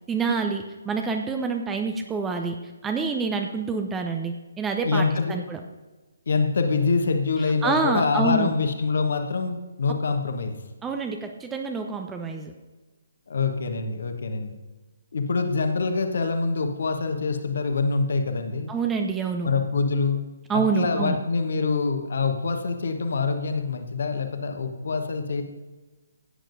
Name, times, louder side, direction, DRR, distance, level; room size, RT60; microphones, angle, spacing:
voice 1, 0.1-2.6 2.8-5.6 7.6-8.5 10.8-12.5 18.7-19.5 20.5-21.2, right 4 dB, 10° right, 4 dB, 0.5 m, -27 dB
voice 2, 4.8-5.4 6.3-10.6 13.3-14.5 15.1-18.7 19.4-20.2 20.5-25.4, left 4 dB, 55° left, 6 dB, 1.2 m, -25 dB
16.0 x 9.0 x 2.6 m, 1.2 s
figure-of-eight pair, 135°, 0 cm